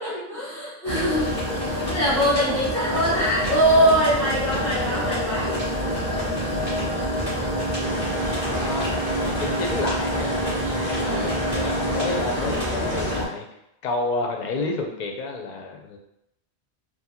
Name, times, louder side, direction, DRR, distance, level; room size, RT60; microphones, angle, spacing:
voice 1, 0.0-5.6 11.1-11.3, equal, 15° left, -9 dB, 0.8 m, -23 dB
sound 1, 0.8-13.3, equal, 45° right, 1.8 m, -26 dB
voice 2, 4.6-5.4 8.5-8.9 9.2-10.4 10.9-13.5 13.8-16.0, left 3 dB, 50° left, 2 dB, 0.6 m, -31 dB
sound 2, 7.8-13.1, equal, 20° right, 1.1 m, -34 dB
3.9 x 2.2 x 2.8 m, 0.82 s
omnidirectional pair, 1.1 m